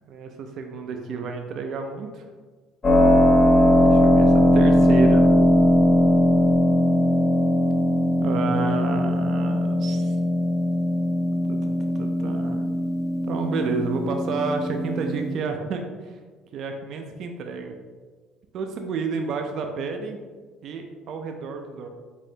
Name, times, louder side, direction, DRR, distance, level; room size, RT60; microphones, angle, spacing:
voice 1, 0.1-2.3 3.8-5.3 8.2-10.2 11.5-11.7 12.0-12.6 13.3-16.2 16.5-17.7 18.5-20.2 20.6-21.9, right 4 dB, 55° right, 4 dB, 0.4 m, -30 dB
Keyboard (musical), 2.8-15.4, left 1 dB, 30° left, 1.0 m, -19 dB
4.3 x 2.7 x 3.2 m, 1.4 s
supercardioid pair, 105°, 0 cm